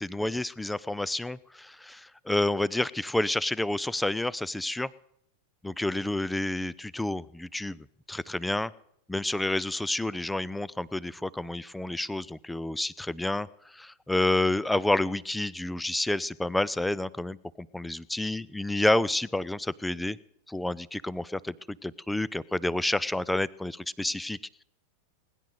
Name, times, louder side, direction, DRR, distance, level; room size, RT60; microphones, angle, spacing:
voice 1, 0.0-4.9 5.6-8.7 9.1-20.2 20.5-24.6, left 1 dB, 5° left, 21 dB, 0.5 m, -29 dB
20.0 x 10.5 x 6.6 m, 0.73 s
figure-of-eight pair, 90°, 0 cm